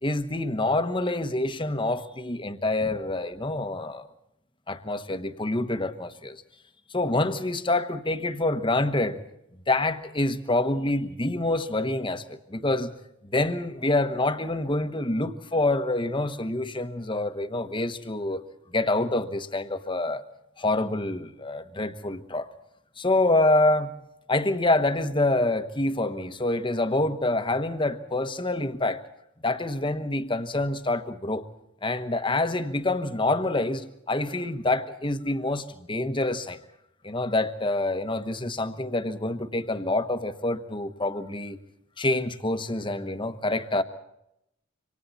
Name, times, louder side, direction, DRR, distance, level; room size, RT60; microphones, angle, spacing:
voice 1, 0.0-4.1 4.7-6.4 6.9-9.2 9.7-12.9 13.2-18.4 18.7-20.2 20.6-22.5 23.0-23.9 24.3-29.0 29.4-31.5 31.8-36.6 37.0-41.6 42.0-43.8, left 2 dB, 25° left, 1.2 m, -26 dB
27.0 x 25.0 x 4.2 m
head